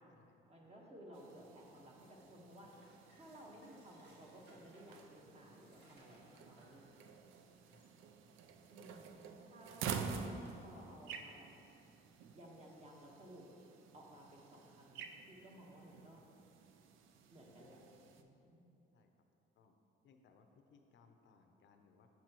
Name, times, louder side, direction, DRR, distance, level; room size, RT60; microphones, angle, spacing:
voice 1, 0.5-2.7 3.2-7.1 8.7-9.9 10.1-10.3 10.6-11.5 12.3-13.5 13.9-16.2 17.3-17.8 18.2-18.6, right 1 dB, 30° right, -2 dB, 1.2 m, -57 dB
sound 1, 1.1-18.2, right 6 dB, 85° right, 0.4 m, -50 dB
sound 2, 2.0-9.9 10.4-11.4, right 1 dB, 60° right, 1.5 m, -69 dB
voice 2, 20.0-22.1, left 5 dB, 65° left, 5 dB, 0.6 m, -67 dB
7.5 x 5.9 x 2.9 m, 2.8 s
cardioid pair, 90°, 20 cm